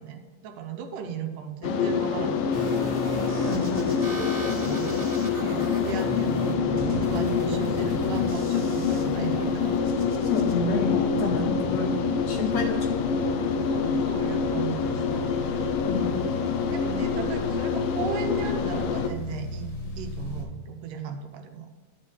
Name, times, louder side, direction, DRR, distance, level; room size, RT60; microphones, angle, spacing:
voice 1, 0.0-2.9 4.2-9.8 13.7-15.8 16.7-21.7, right 7 dB, 75° right, 5 dB, 2.4 m, -37 dB
sound 1, 1.6-19.1, left 6 dB, 85° left, 2.5 m, -26 dB
sound 2, 2.5-10.5, equal, 20° right, 1.7 m, -36 dB
voice 2, 3.4-4.1 10.2-13.0 15.8-16.2, left 3 dB, 60° left, 1 dB, 2.2 m, -29 dB
sound 3, 6.6-20.4, left 1 dB, 45° left, 2.2 m, -38 dB
11.5 x 5.5 x 5.4 m, 1.5 s
omnidirectional pair, 3.8 m